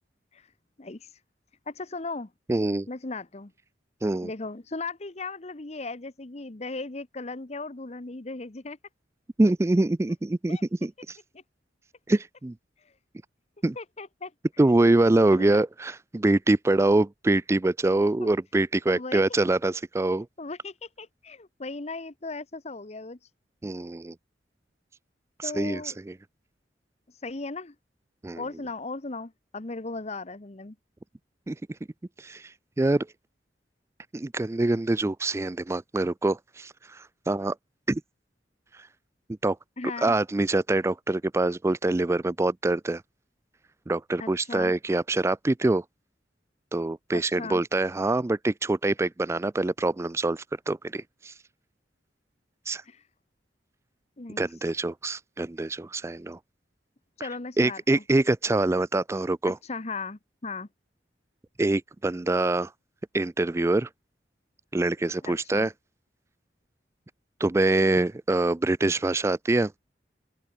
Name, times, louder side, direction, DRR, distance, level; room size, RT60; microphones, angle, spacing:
voice 1, 1.7-2.3 2.9-3.5 4.2-8.8 10.5-10.6 11.3-11.4 13.8-14.3 15.4-15.6 18.9-19.2 20.4-23.2 25.4-26.0 27.2-27.7 28.4-30.8 39.8-40.2 44.2-44.7 47.1-47.6 54.2-54.5 57.2-58.0 59.7-60.7 65.2-65.7, left 3 dB, 40° left, 1.0 m, -37 dB
voice 2, 2.5-2.9 4.0-4.3 9.4-11.2 12.1-12.5 13.6-13.8 14.6-20.3 23.6-24.1 25.4-26.1 28.2-28.4 31.5-31.6 32.2-33.1 34.1-37.6 37.9-38.0 38.7-38.9 39.4-39.6 40.0-43.0 43.9-45.8 46.7-51.3 52.7-52.8 54.4-56.4 57.2-57.3 57.6-59.6 61.6-62.7 63.1-63.9 64.7-65.7 67.4-69.7, right 2 dB, 15° right, 0.3 m, -25 dB
open air
head